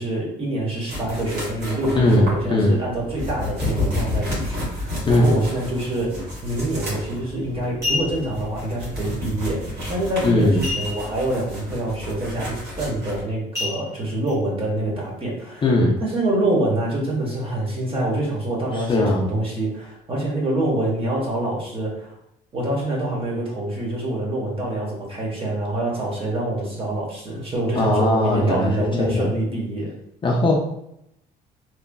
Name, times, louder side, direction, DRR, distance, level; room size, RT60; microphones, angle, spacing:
voice 1, 0.0-15.6 16.0-22.1 22.5-29.9, right 1 dB, 35° right, -3 dB, 1.1 m, -26 dB
sound 1, 0.9-13.2, left 1 dB, 70° right, 1.4 m, -31 dB
voice 2, 2.0-2.8 5.1-5.4 10.2-10.6 15.6-15.9 18.9-19.3 27.8-28.7 29.0-29.3 30.2-30.6, left 1 dB, 30° left, -1 dB, 0.5 m, -19 dB
sound 2, 7.0-7.2 7.6-8.4 10.6-11.3 11.6-11.7 12.2-12.5 13.5-14.3 14.9-15.0, left 3 dB, 15° right, 1.4 m, -29 dB
3.0 x 2.4 x 2.2 m, 0.79 s
cardioid pair, 110°, 17 cm